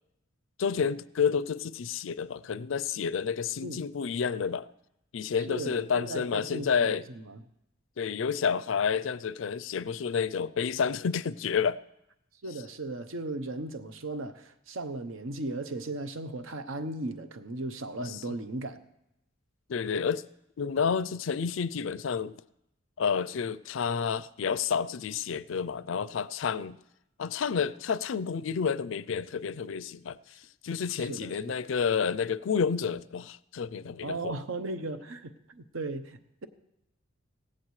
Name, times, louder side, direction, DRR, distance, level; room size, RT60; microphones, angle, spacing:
voice 1, 0.6-4.7 5.1-7.0 8.0-11.8 18.1-18.3 19.7-20.2 20.6-22.4 23.0-26.8 27.2-30.2 30.6-34.4, left 6 dB, 70° left, 0.4 m, -30 dB
voice 2, 5.4-7.4 12.4-18.8 31.0-31.6 34.0-36.5, right 2 dB, 75° right, 0.9 m, -37 dB
17.0 x 15.0 x 3.2 m
head